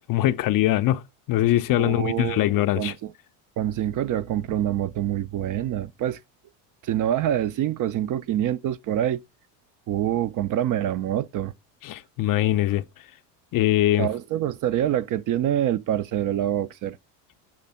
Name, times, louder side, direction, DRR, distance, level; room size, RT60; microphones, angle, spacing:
voice 1, 0.1-1.0 1.3-2.9 11.8-12.8 13.5-14.1, left 14 dB, 45° left, 0.5 m, -22 dB
voice 2, 1.8-3.1 3.6-6.2 6.8-9.2 9.9-11.5 14.0-17.0, right 11 dB, 40° right, 0.5 m, -26 dB
6.3 x 3.3 x 5.6 m
supercardioid pair, 85°, 50 cm